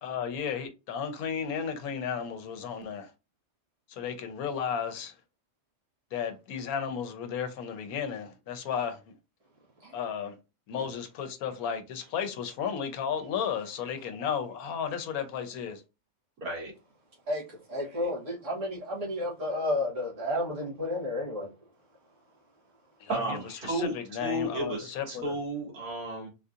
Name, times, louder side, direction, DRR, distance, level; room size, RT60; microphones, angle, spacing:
voice 1, 0.0-3.1 3.9-5.2 6.1-9.1 9.9-10.4 10.7-15.8 23.0-25.4, left 7 dB, 80° left, 1.1 m, -34 dB
voice 2, 16.4-16.7 23.1-26.3, right 1 dB, 85° right, 2.1 m, -33 dB
voice 3, 17.3-21.5, left 1 dB, 60° right, 1.7 m, -32 dB
3.9 x 2.7 x 2.4 m
omnidirectional pair, 1.5 m